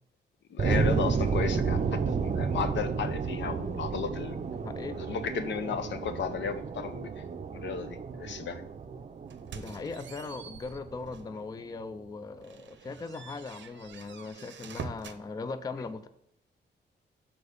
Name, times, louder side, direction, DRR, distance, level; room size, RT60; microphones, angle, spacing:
voice 1, 0.5-4.4 4.9-7.1 7.5-8.6, left 6 dB, 80° left, 9 dB, 0.8 m, -34 dB
sound 1, 0.6-11.4, right 5 dB, 40° right, 0.5 m, -32 dB
voice 2, 4.5-5.0 9.5-16.1, left 4 dB, 20° left, 11 dB, 0.3 m, -39 dB
sound 2, 9.3-11.4 11.8-12.0 12.4-15.2, right 6 dB, 90° right, 0.7 m, -45 dB
6.8 x 4.3 x 6.7 m, 0.74 s
wide cardioid pair, 175°, 18 cm